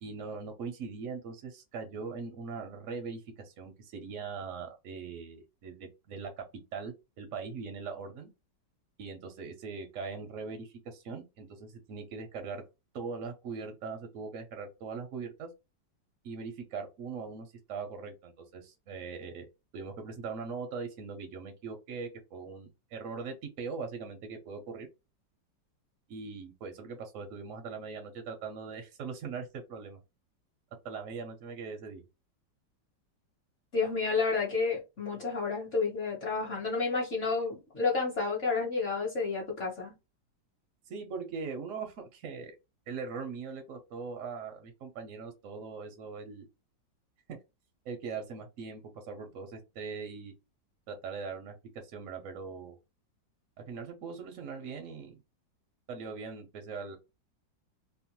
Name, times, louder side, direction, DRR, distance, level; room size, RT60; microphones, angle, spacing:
voice 1, 0.0-6.4 6.7-8.3 9.0-12.6 12.9-15.5 16.2-19.5 19.7-24.9 26.1-30.0 30.8-32.0 40.9-42.5 42.9-46.5 47.3-47.4 47.8-50.3 50.9-51.6 51.9-52.8 53.7-55.2 55.9-57.0, right 5 dB, 65° right, 0.8 m, -41 dB
voice 2, 33.7-39.9, left 4 dB, 50° left, 1.1 m, -30 dB
2.9 x 2.1 x 2.8 m
omnidirectional pair, 2.0 m